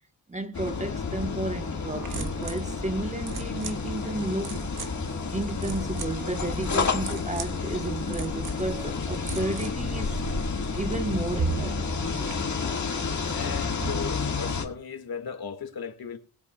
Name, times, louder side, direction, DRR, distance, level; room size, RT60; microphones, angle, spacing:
voice 1, 0.3-4.6 5.3-10.2 10.7-12.5 13.8-13.9, right 2 dB, 15° right, 1.0 m, -32 dB
sound 1, 0.5-14.6, left 5 dB, 45° left, 1.9 m, -30 dB
sound 2, 1.9-12.3, right 4 dB, 50° right, 1.7 m, -39 dB
voice 2, 13.3-16.2, left 6 dB, 60° left, 2.0 m, -36 dB
21.5 x 8.3 x 2.3 m
wide cardioid pair, 110°, 41 cm